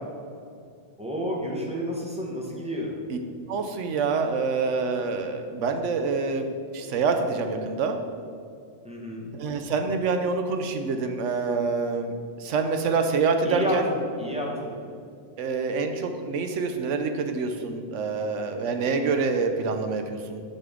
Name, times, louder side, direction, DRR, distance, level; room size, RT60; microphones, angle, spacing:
voice 1, 1.0-2.9 8.8-9.3 13.4-14.7, equal, 5° right, -3 dB, 1.1 m, -30 dB
voice 2, 3.5-8.0 9.3-13.9 15.4-20.4, right 4 dB, 90° right, 6 dB, 1.0 m, -26 dB
6.4 x 6.4 x 3.7 m, 2.3 s
omnidirectional pair, 1.2 m